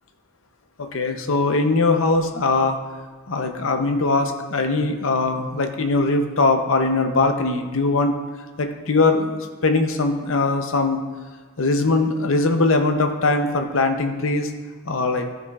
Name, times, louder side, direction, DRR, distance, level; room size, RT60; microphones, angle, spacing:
voice 1, 0.8-2.8 3.3-8.1 8.6-11.0 11.6-14.5 14.9-15.3, left 3 dB, 65° left, 5 dB, 0.7 m, -21 dB
14.5 x 4.8 x 2.4 m, 1.4 s
head